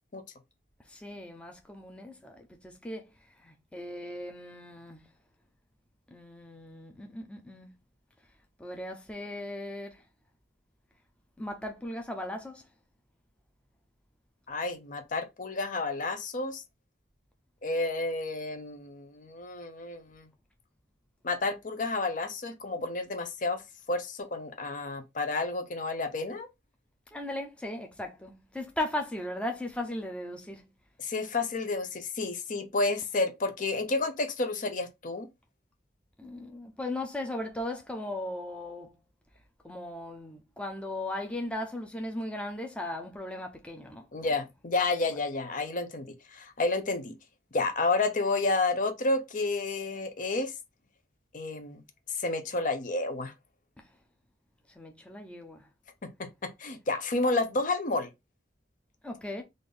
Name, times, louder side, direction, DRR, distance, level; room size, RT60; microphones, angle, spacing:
voice 1, 0.9-3.1 3.4-5.1 6.1-7.7 8.6-10.0 11.4-12.7 27.1-30.7 36.2-38.9 39.6-44.3 54.7-55.7 59.0-59.4, left 1 dB, 5° left, 0.6 m, -37 dB
voice 2, 14.5-16.6 17.6-20.3 21.2-23.6 23.9-26.5 31.0-35.3 44.1-47.1 47.5-50.5 51.3-51.8 52.2-53.3 56.0-58.1, left 3 dB, 45° left, 0.6 m, -30 dB
3.9 x 2.5 x 3.4 m
head